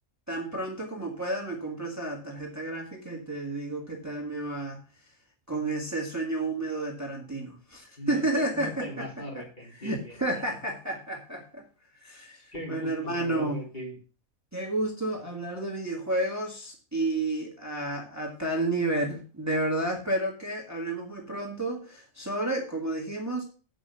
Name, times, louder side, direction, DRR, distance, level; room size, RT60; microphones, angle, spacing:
voice 1, 0.3-4.8 5.5-9.1 9.8-11.7 12.0-13.6 14.5-23.4, right 2 dB, 10° right, 0 dB, 1.8 m, -31 dB
voice 2, 8.0-10.6 12.5-14.0, left 1 dB, 35° left, -2 dB, 3.1 m, -40 dB
8.0 x 6.3 x 6.8 m, 0.37 s
omnidirectional pair, 1.4 m